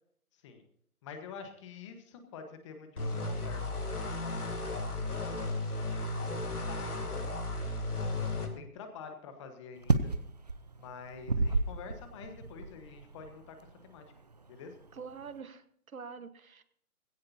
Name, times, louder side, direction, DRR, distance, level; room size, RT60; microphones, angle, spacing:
voice 1, 1.0-3.7 3.9-5.6 6.3-7.3 8.0-10.1 10.8-13.6 13.8-14.0 14.5-14.7, left 5 dB, 20° left, 6 dB, 1.2 m, -47 dB
sound 1, 3.0-8.5, left 2 dB, 90° left, 2.7 m, -34 dB
sound 2, 9.8-15.3, right 3 dB, 30° right, 0.5 m, -32 dB
voice 2, 14.9-16.6, right 5 dB, 65° right, 11 dB, 1.4 m, -45 dB
18.5 x 16.5 x 2.8 m, 0.65 s
figure-of-eight pair, 145°, 44 cm